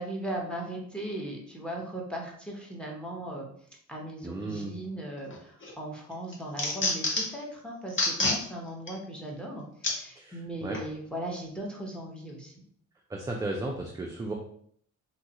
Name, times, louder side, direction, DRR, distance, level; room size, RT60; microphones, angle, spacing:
voice 1, 0.0-3.5 3.9-12.5, right 1 dB, 5° left, -1 dB, 0.8 m, -38 dB
voice 2, 4.2-4.7 10.2-10.8 13.1-14.3, right 2 dB, 10° right, 0 dB, 0.4 m, -35 dB
sound 1, 5.3-5.7 6.1-7.4 7.9-8.4 8.9-9.0 9.8-10.0 10.7-10.9, left 2 dB, 40° left, 0.8 m, -28 dB
3.0 x 2.3 x 2.8 m, 0.63 s
cardioid pair, 90°, 30 cm